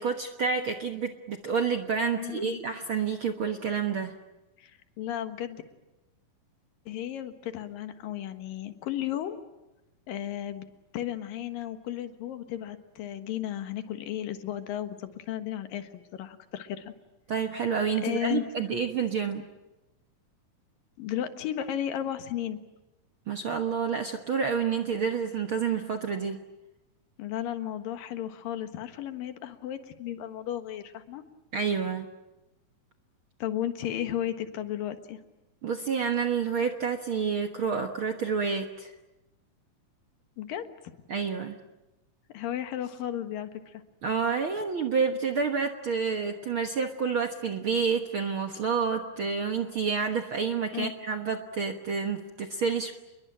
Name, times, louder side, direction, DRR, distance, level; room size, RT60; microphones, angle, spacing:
voice 1, 0.0-4.1 17.3-19.4 23.3-26.4 31.5-32.1 35.6-38.9 41.1-41.6 44.0-52.9, right 6 dB, 55° right, 5 dB, 1.5 m, -29 dB
voice 2, 2.1-2.6 4.6-5.6 6.9-9.4 10.1-10.7 10.9-16.9 18.0-18.4 21.0-22.6 27.2-31.2 33.4-35.2 40.4-40.7 42.3-43.8 50.7-50.9, left 11 dB, 75° left, 9 dB, 3.1 m, -34 dB
27.5 x 22.5 x 9.0 m, 0.99 s
omnidirectional pair, 4.1 m